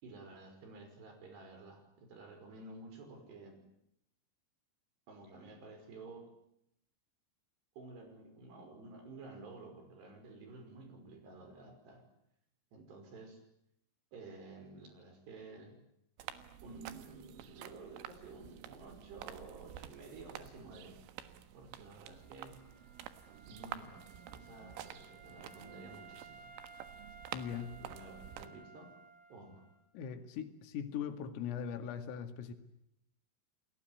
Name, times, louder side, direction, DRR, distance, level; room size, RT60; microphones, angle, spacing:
voice 1, 0.0-3.7 5.1-6.3 7.8-12.1 12.7-13.4 14.1-15.8 16.6-21.0 21.5-22.9 23.5-24.1 24.3-26.4 27.5-29.0 29.3-29.6, right 3 dB, 55° right, 6 dB, 7.4 m, -52 dB
sound 1, 16.2-28.5, right 11 dB, 80° right, 4.0 m, -50 dB
Wind instrument woodwind instrument, 22.1-29.9, right 5 dB, 10° right, 1.9 m, -57 dB
voice 2, 27.3-27.7 29.9-32.5, left 8 dB, 90° left, 9 dB, 4.8 m, -40 dB
29.5 x 20.5 x 9.4 m, 0.76 s
omnidirectional pair, 5.7 m